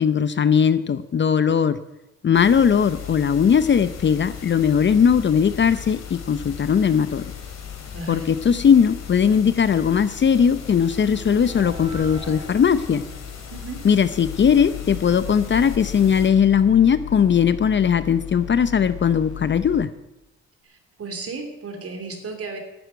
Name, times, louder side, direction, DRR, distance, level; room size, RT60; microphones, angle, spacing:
voice 1, 0.0-1.8 2.2-7.2 8.1-13.0 13.8-19.9, left 7 dB, 40° left, 14 dB, 0.7 m, -19 dB
sound 1, 2.3-16.3, left 7 dB, 60° left, 2.8 m, -37 dB
voice 2, 7.9-8.3 13.5-13.8 20.6-22.6, right 4 dB, 50° right, 5 dB, 3.1 m, -34 dB
sound 2, 8.7-15.6, right 2 dB, 15° right, 2.4 m, -43 dB
sound 3, 14.2-19.9, left 11 dB, 85° left, 2.0 m, -36 dB
11.0 x 7.9 x 9.2 m, 0.95 s
cardioid pair, 90°, 30 cm